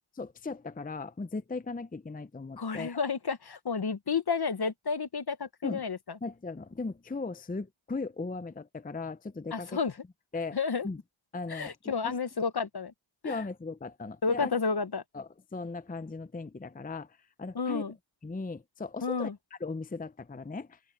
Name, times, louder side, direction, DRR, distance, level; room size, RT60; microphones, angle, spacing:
voice 1, 0.1-3.0 5.6-5.8 6.2-9.8 10.3-10.6 10.8-11.0 11.3-12.2 13.2-14.5 15.1-17.9 18.2-20.8, left 3 dB, 20° left, 0.6 m, -38 dB
voice 2, 2.6-6.0 9.5-9.9 10.5-10.9 11.5-12.9 13.2-13.4 14.2-15.0 17.5-17.9 19.0-19.3, left 5 dB, 50° left, 1.0 m, -31 dB
wide cardioid pair, 60°, 48 cm